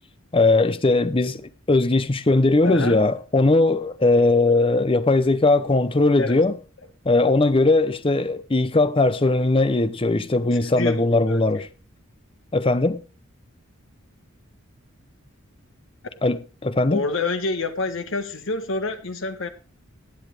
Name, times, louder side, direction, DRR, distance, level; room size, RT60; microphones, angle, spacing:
voice 1, 0.3-6.5 7.1-11.7 12.5-13.0 16.2-17.0, left 2 dB, 25° left, 0.6 m, -19 dB
voice 2, 2.6-3.0 6.2-6.4 10.6-11.4 16.9-19.5, left 3 dB, 65° left, 1.4 m, -27 dB
17.0 x 8.6 x 3.3 m
head